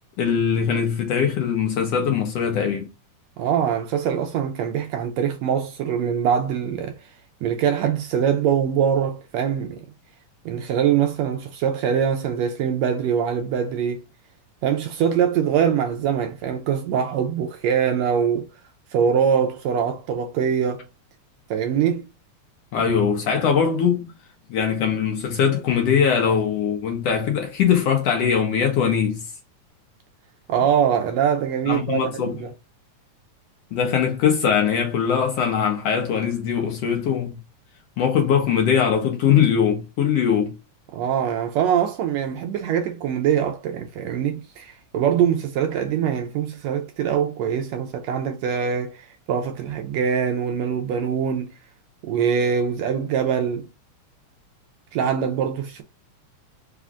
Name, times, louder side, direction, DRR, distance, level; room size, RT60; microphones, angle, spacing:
voice 1, 0.2-2.9 22.7-24.1 24.5-29.2 31.7-32.4 33.7-37.4 38.0-40.5, left 7 dB, 70° left, 1.7 m, -21 dB
voice 2, 3.4-7.0 7.4-9.9 10.4-14.0 14.6-18.5 18.9-20.9 21.5-22.1 30.5-32.5 40.9-51.5 52.0-53.7 54.9-55.8, right 8 dB, 80° right, 1.6 m, -23 dB
4.9 x 2.3 x 3.5 m
omnidirectional pair, 3.4 m